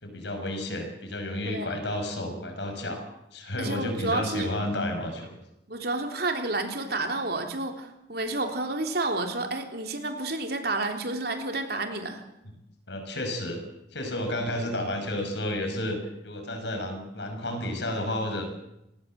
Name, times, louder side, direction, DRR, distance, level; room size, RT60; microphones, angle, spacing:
voice 1, 0.0-3.0 3.3-5.4 12.9-13.6 13.9-16.0 16.2-18.4, left 1 dB, 70° left, 5 dB, 6.2 m, -31 dB
voice 2, 1.4-1.8 3.6-4.5 5.7-12.2, right 2 dB, 60° right, 5 dB, 3.6 m, -30 dB
28.0 x 19.0 x 7.8 m, 0.85 s
head